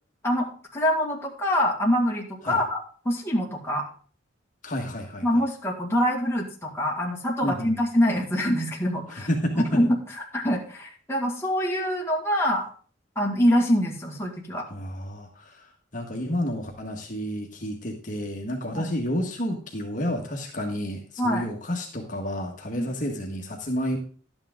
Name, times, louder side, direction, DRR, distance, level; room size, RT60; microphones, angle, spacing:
voice 1, 0.2-3.9 5.2-9.3 9.5-12.7 13.2-14.7 18.7-18.9 21.2-21.5 22.8-22.9, equal, 15° left, -2 dB, 2.0 m, -25 dB
voice 2, 4.6-5.2 7.4-7.7 9.1-9.5 14.7-15.6 15.9-24.0, equal, 40° left, 1 dB, 1.6 m, -30 dB
11.5 x 8.9 x 3.8 m, 0.42 s
head